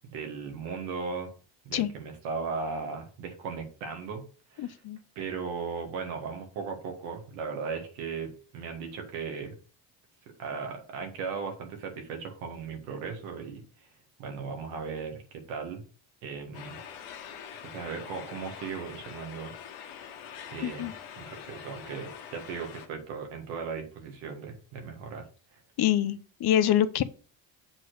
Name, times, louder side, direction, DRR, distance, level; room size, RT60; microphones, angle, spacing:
voice 1, 0.1-1.3 1.7-4.3 4.5-4.8 5.2-9.6 10.4-13.9 14.2-15.8 16.2-16.8 17.6-19.5 20.5-20.9 21.2-25.2 25.5-25.6, right 5 dB, 85° right, 1.8 m, -37 dB
voice 2, 4.6-5.0 20.6-20.9 25.8-27.0, left 11 dB, 50° left, 0.7 m, -25 dB
sound 1, 16.5-22.9, left 8 dB, 85° left, 1.2 m, -44 dB
7.5 x 3.1 x 6.2 m
supercardioid pair, 65°, 48 cm